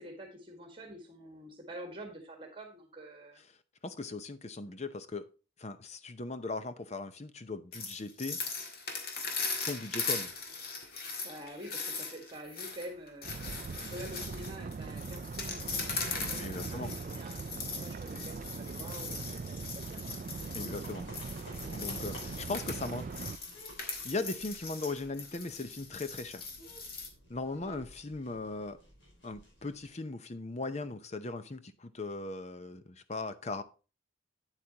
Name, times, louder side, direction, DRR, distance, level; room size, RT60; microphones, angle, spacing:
voice 1, 0.0-3.4 11.2-13.3 13.9-20.2 27.6-27.8, equal, 25° right, 1.7 m, -47 dB
voice 2, 3.8-5.3 5.6-8.4 9.7-10.3 16.4-16.9 20.5-21.1 21.7-23.1 24.0-26.5 27.3-28.8 29.2-33.6, left 3 dB, 35° left, 0.7 m, -38 dB
sound 1, 7.7-27.1, left 4 dB, 50° left, 1.8 m, -40 dB
sound 2, 13.2-23.3, right 4 dB, 40° right, 0.3 m, -41 dB
sound 3, 20.2-29.9, equal, 85° left, 5.2 m, -53 dB
9.1 x 8.2 x 2.9 m
head